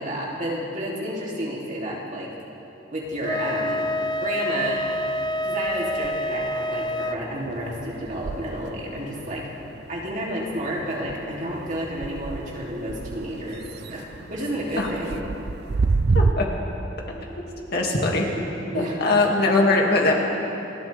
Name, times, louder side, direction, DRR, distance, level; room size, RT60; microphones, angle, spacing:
voice 1, 0.0-2.3 2.9-3.8 4.2-4.8 5.4-9.4 9.9-14.0 14.3-15.2 18.0-18.1 18.7-19.0, equal, 40° right, -4 dB, 3.0 m, -30 dB
sound 1, 3.1-4.3 4.6-16.3, right 3 dB, 55° right, 0.5 m, -31 dB
Wind instrument woodwind instrument, 3.2-7.2, left 1 dB, 25° left, 0.4 m, -27 dB
voice 2, 16.1-16.5 17.7-18.3 18.7-20.1, left 2 dB, 55° left, -1 dB, 2.3 m, -21 dB
29.5 x 13.5 x 3.5 m, 2.9 s
head